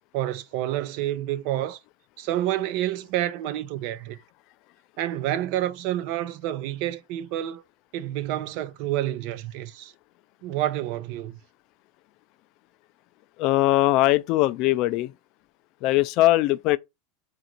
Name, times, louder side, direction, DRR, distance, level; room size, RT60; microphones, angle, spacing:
voice 1, 0.1-1.8 2.2-4.2 5.0-7.6 7.9-9.9 10.4-11.4, right 13 dB, 60° right, 0.5 m, -28 dB
voice 2, 13.4-15.1 15.8-16.8, left 17 dB, 50° left, 0.3 m, -21 dB
3.9 x 2.5 x 4.5 m
supercardioid pair, 135°, 0 cm